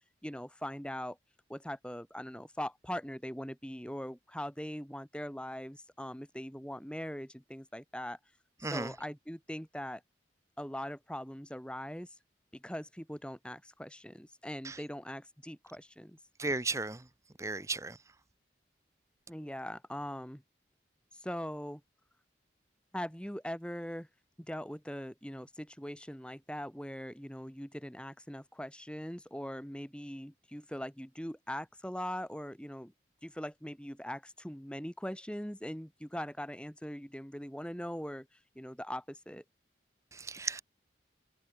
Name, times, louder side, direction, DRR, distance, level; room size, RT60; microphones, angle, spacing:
voice 1, 0.2-1.2 1.5-8.2 8.7-10.0 10.6-12.2 12.5-16.2 19.3-20.4 21.1-21.8 22.9-24.1 24.5-32.9 33.2-39.4, equal, 5° left, 3.0 m, -41 dB
voice 2, 16.4-17.0 17.4-18.0 40.1-40.6, right 3 dB, 15° right, 0.8 m, -35 dB
open air
head